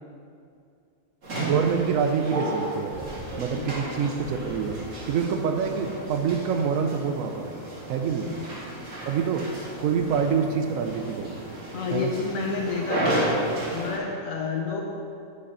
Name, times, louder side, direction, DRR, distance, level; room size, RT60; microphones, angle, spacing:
sound 1, 1.2-14.0, right 1 dB, 75° right, 2.2 m, -33 dB
voice 1, 1.4-3.0 3.4-7.5 7.9-8.3 9.0-9.5 9.8-11.3 11.9-12.1, right 6 dB, 90° right, 5 dB, 1.1 m, -26 dB
voice 2, 11.7-13.3 13.7-14.8, left 4 dB, 85° left, 0 dB, 1.4 m, -29 dB
10.0 x 6.5 x 5.6 m, 2.4 s
omnidirectional pair, 1.3 m